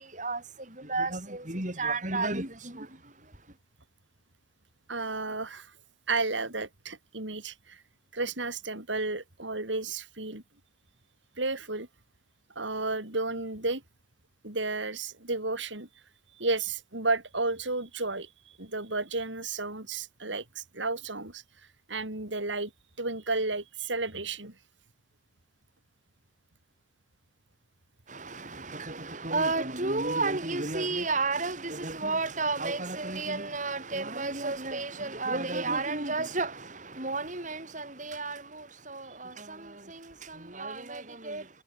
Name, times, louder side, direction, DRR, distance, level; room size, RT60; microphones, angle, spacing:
voice 1, 0.9-2.9 28.1-36.7 37.0-40.0 40.3-41.4, right 3 dB, 40° right, 5.9 m, -32 dB
voice 2, 4.9-5.7 6.1-7.8 8.1-10.4 11.4-11.9 12.6-13.8 14.4-15.9 16.4-21.4 21.9-22.7 23.0-24.6, right 3 dB, 80° right, 6.0 m, -32 dB
head